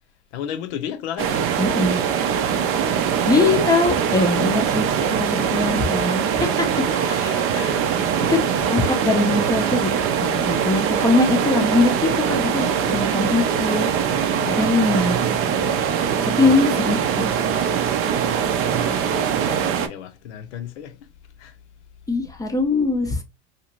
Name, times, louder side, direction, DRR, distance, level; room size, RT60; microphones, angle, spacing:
voice 1, 0.3-1.5 6.8-7.8 8.3-9.0 14.3-14.8 16.4-16.7 18.3-21.1 21.4-21.5, left 9 dB, 70° left, 0.7 m, -35 dB
sound 1, 1.2-19.9, right 8 dB, 40° right, 0.5 m, -22 dB
voice 2, 1.6-2.1 3.3-7.4 8.3-8.4 8.7-9.9 10.2-13.9 14.5-15.2 16.4-17.3 22.1-23.2, left 3 dB, 10° left, 0.5 m, -22 dB
2.8 x 2.5 x 2.9 m
hypercardioid pair, 100°, 35 cm